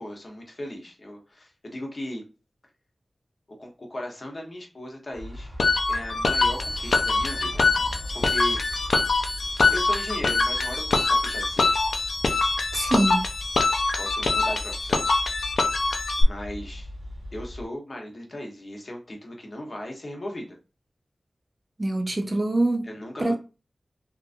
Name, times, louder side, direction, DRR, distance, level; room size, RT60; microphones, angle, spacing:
voice 1, 0.0-2.2 3.6-5.5 5.9-7.7 8.1-8.9 9.7-11.8 14.0-15.1 16.2-16.9 17.3-20.6 22.8-23.4, left 1 dB, 45° left, 0.8 m, -37 dB
sound 1, 5.1-17.7, left 1 dB, 65° right, 0.9 m, -38 dB
sound 2, 5.6-16.2, left 3 dB, 80° left, 0.4 m, -24 dB
voice 2, 12.7-13.3 21.8-22.9 23.2-23.4, right 2 dB, 35° right, 0.5 m, -24 dB
2.9 x 2.4 x 2.5 m
wide cardioid pair, 65°, 0 cm